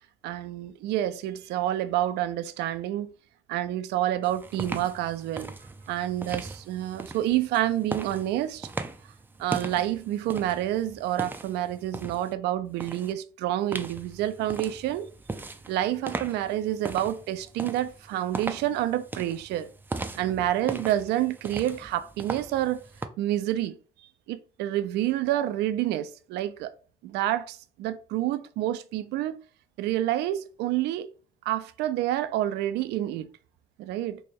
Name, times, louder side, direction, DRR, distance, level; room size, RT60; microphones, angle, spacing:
voice 1, 0.2-3.1 3.5-5.5 5.9-8.7 9.4-15.1 15.7-19.7 20.1-22.8 23.2-23.8 24.3-26.7 27.0-29.4 29.8-31.1 31.5-33.3 33.8-34.2, right 13 dB, 80° right, 0.4 m, -28 dB
sound 1, 4.2-12.3 12.8-13.1 13.7-23.1, right 3 dB, 10° right, 0.4 m, -39 dB
3.2 x 2.2 x 4.2 m
cardioid pair, 110°, 17 cm